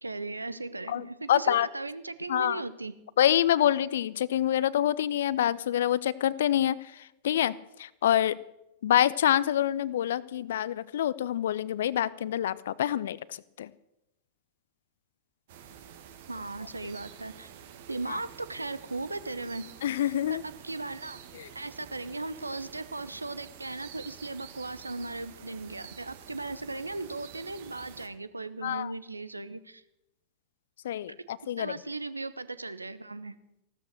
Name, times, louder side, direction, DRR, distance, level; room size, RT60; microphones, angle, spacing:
voice 1, 0.0-2.9 16.3-17.5 17.9-19.6 20.3-21.2 21.5-29.8 31.6-33.3, right 2 dB, 80° right, 16 dB, 0.8 m, -37 dB
voice 2, 0.9-1.7 2.3-2.6 3.2-8.4 8.8-13.7 18.1-18.2 19.8-20.4 21.3-21.5 28.6-28.9 30.8-31.7, left 11 dB, 60° left, 19 dB, 0.5 m, -27 dB
sound 1, 15.5-28.1, right 9 dB, 55° right, 1.5 m, -49 dB
15.5 x 13.0 x 6.4 m, 0.89 s
figure-of-eight pair, 90°, 0 cm